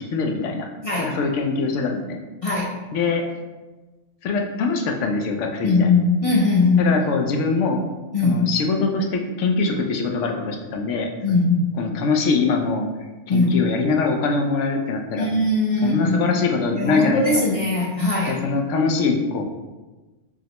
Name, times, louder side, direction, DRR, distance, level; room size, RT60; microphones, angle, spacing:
voice 1, 0.1-0.7 1.0-2.2 2.9-3.2 4.2-5.9 6.8-7.8 8.2-11.4 11.8-12.9 13.3-15.3 15.8-17.5 18.3-19.4, left 4 dB, 85° left, 2 dB, 0.9 m, -23 dB
voice 2, 5.6-6.9 8.1-8.5 11.2-11.7 13.3-13.6 15.2-16.3 16.7-18.4, left 3 dB, 45° left, -4 dB, 0.5 m, -20 dB
6.1 x 2.1 x 2.9 m, 1.2 s
omnidirectional pair, 1.2 m